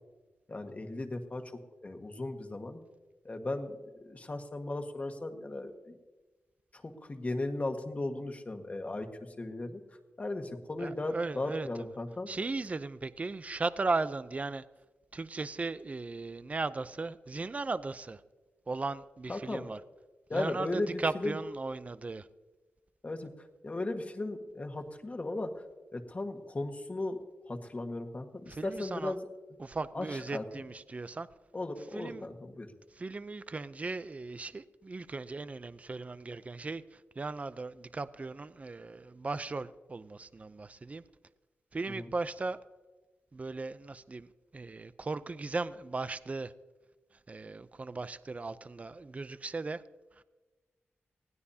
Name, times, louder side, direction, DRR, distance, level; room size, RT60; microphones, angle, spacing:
voice 1, 0.5-2.8 3.2-6.0 6.7-9.8 10.2-12.3 19.3-19.7 20.3-21.4 23.0-25.5 25.9-27.2 27.5-29.2 29.9-30.4 31.5-32.7 41.9-42.1, left 2 dB, 30° left, 1.6 m, -36 dB
voice 2, 10.8-11.7 12.3-14.6 15.1-18.2 18.7-19.8 20.3-22.3 28.5-29.1 29.6-31.3 31.9-32.2 33.0-41.0 41.7-42.6 43.3-46.5 47.3-49.8, right 3 dB, 30° right, 0.5 m, -37 dB
20.0 x 16.0 x 2.8 m
cardioid pair, 80°, 4 cm